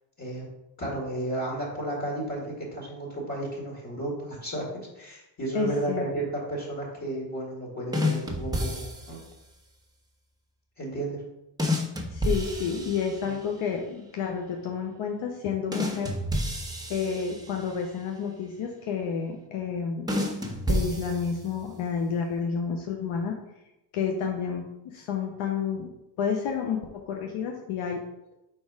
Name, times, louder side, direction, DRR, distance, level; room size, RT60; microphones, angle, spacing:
voice 1, 0.8-4.7 5.0-9.2 10.8-11.2 13.2-13.3, right 2 dB, 35° left, -3 dB, 2.2 m, -33 dB
voice 2, 5.5-6.1 12.1-16.1 16.9-20.2 20.7-23.4 23.9-25.9 26.2-28.0, left 6 dB, 85° left, 2 dB, 0.8 m, -30 dB
sound 1, 7.9-9.3 11.6-13.6 15.7-17.9 20.1-21.7, left 1 dB, 10° right, 1.2 m, -30 dB
4.6 x 4.4 x 4.8 m, 0.91 s
cardioid pair, 65°, 48 cm